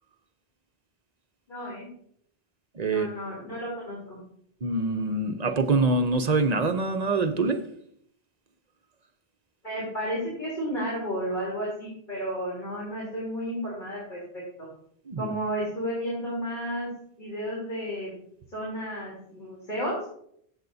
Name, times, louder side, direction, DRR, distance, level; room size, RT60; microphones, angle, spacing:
voice 1, 1.5-1.9 2.8-4.2 9.6-14.2 14.6-14.7 15.2-16.9 17.2-18.2 18.5-20.0, equal, 50° left, 3.5 m, -32 dB
voice 2, 2.8-3.1 4.6-7.6 15.1-15.3, right 3 dB, 45° right, 0.7 m, -25 dB
14.5 x 8.1 x 2.7 m
omnidirectional pair, 1.1 m